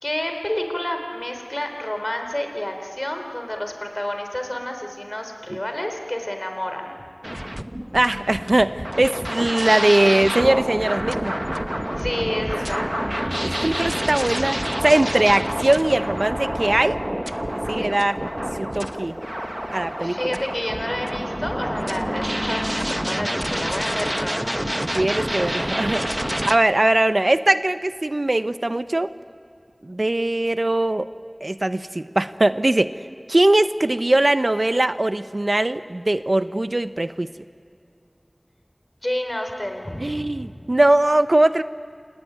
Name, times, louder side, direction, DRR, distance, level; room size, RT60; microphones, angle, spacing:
voice 1, 0.0-7.0 12.0-12.9 13.3-13.8 17.8-17.9 20.0-24.5 39.0-40.5, left 1 dB, 35° left, 5 dB, 4.0 m, -29 dB
sound 1, 7.2-26.6, equal, 15° right, 1.0 m, -27 dB
voice 2, 7.9-11.3 13.2-17.0 17.7-18.2 18.6-19.2 19.7-20.4 24.9-26.0 26.5-29.1 29.8-31.1 31.4-32.9 33.3-37.3 40.0-41.6, right 1 dB, 60° right, 12 dB, 0.7 m, -20 dB
27.0 x 19.0 x 9.6 m, 2.3 s
wide cardioid pair, 40°, 0 cm